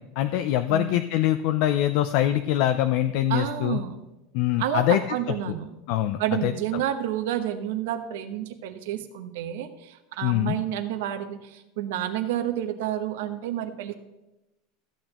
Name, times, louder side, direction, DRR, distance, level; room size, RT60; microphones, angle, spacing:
voice 1, 0.2-3.8 4.3-5.0 5.5-5.6 5.9-6.5 10.2-10.6, left 13 dB, 45° left, 9 dB, 0.4 m, -23 dB
voice 2, 0.7-1.0 3.3-4.0 4.6-5.8 6.2-13.9, right 11 dB, 70° right, 9 dB, 1.0 m, -30 dB
14.0 x 8.8 x 3.0 m, 0.97 s
supercardioid pair, 180°, 0 cm